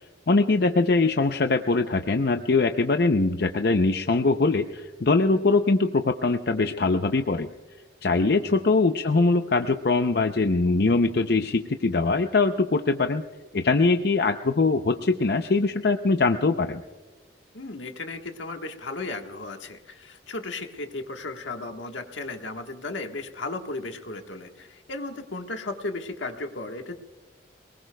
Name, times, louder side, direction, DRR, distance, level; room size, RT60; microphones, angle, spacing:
voice 1, 0.3-7.5 8.0-13.2 13.5-16.8, left 3 dB, 55° left, 7 dB, 0.6 m, -22 dB
voice 2, 17.5-26.9, left 2 dB, 80° left, 5 dB, 1.4 m, -35 dB
27.0 x 19.5 x 2.2 m, 1.3 s
head